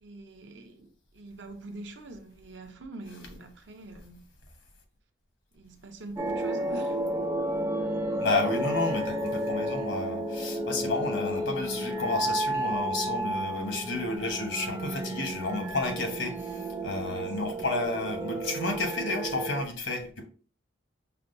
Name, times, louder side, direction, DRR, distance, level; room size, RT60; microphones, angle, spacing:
voice 1, 0.0-4.3 5.5-7.0 17.1-17.2, right 2 dB, 65° right, 0.6 m, -44 dB
sound 1, 6.2-19.6, right 1 dB, 15° right, 0.4 m, -32 dB
voice 2, 8.2-20.2, left 2 dB, 75° left, 1.1 m, -31 dB
5.7 x 2.2 x 2.6 m
head